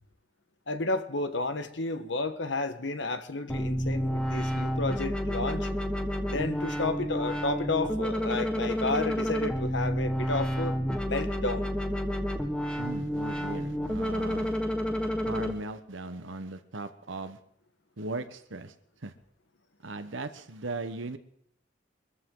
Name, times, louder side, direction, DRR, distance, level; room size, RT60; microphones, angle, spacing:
voice 1, 0.7-5.7 6.3-10.7 11.0-11.7, left 3 dB, 65° left, 1.3 m, -31 dB
sound 1, 3.5-15.5, equal, 5° left, 1.5 m, -30 dB
voice 2, 12.8-14.6 15.2-17.4 18.0-18.7 19.0-19.1 19.8-21.2, right 2 dB, 80° right, 1.2 m, -38 dB
24.0 x 14.0 x 3.9 m
head